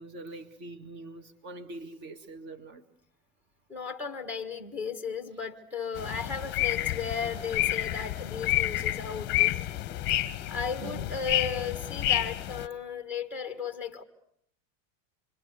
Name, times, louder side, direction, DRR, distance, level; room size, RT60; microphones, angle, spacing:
voice 1, 0.0-2.8 10.8-11.1, right 2 dB, 30° right, 2.1 m, -43 dB
voice 2, 3.7-9.7 10.1-14.0, left 5 dB, 5° right, 1.4 m, -35 dB
sound 1, 6.0-12.7, left 15 dB, 30° left, 1.1 m, -29 dB
26.0 x 24.0 x 8.2 m
supercardioid pair, 175°, 38 cm